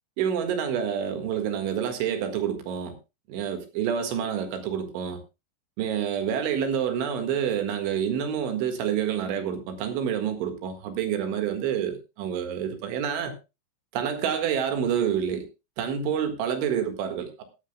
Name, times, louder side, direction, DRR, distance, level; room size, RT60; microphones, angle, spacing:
voice 1, 0.2-3.0 3.3-5.2 5.8-13.4 13.9-15.5 15.8-17.4, right 8 dB, 75° right, 3.9 m, -28 dB
16.5 x 12.5 x 2.2 m
omnidirectional pair, 5.7 m